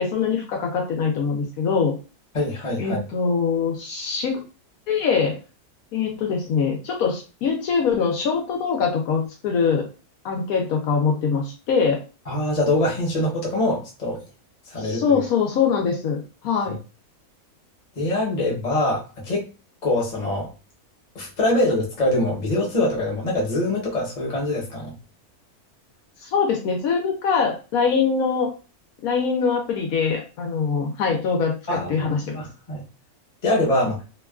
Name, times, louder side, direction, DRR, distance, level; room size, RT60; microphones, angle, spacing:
voice 1, 0.0-2.0 2.8-4.4 4.9-5.4 5.9-9.9 10.2-12.0 14.8-16.7 26.2-28.5 29.0-32.4, left 5 dB, 75° left, 2 dB, 1.0 m, -23 dB
voice 2, 2.3-3.0 12.3-14.2 14.7-15.2 18.0-19.5 19.8-20.5 21.1-24.9 31.7-32.8 33.4-34.0, left 1 dB, 35° left, -3 dB, 0.9 m, -24 dB
2.9 x 2.2 x 2.3 m, 0.32 s
omnidirectional pair, 1.6 m